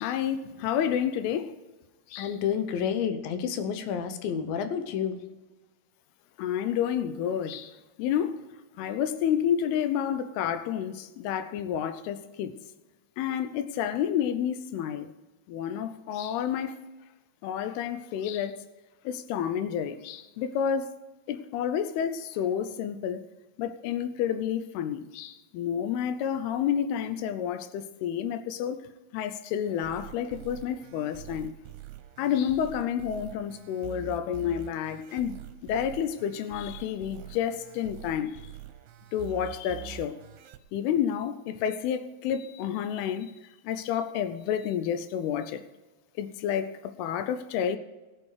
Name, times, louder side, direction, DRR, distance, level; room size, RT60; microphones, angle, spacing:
voice 1, 0.0-1.5 2.1-2.3 6.4-8.5 8.8-12.6 13.2-15.1 15.5-16.8 17.4-18.6 19.0-20.9 21.3-23.3 23.6-28.8 29.1-31.5 32.2-38.5 39.1-40.2 40.7-43.3 43.6-45.6 46.2-47.8, left 9 dB, 90° left, 2.7 m, -30 dB
voice 2, 2.2-5.2, left 8 dB, 75° left, 2.6 m, -30 dB
sound 1, 29.8-40.6, right 14 dB, 85° right, 2.7 m, -45 dB
19.0 x 7.0 x 4.8 m
omnidirectional pair, 4.5 m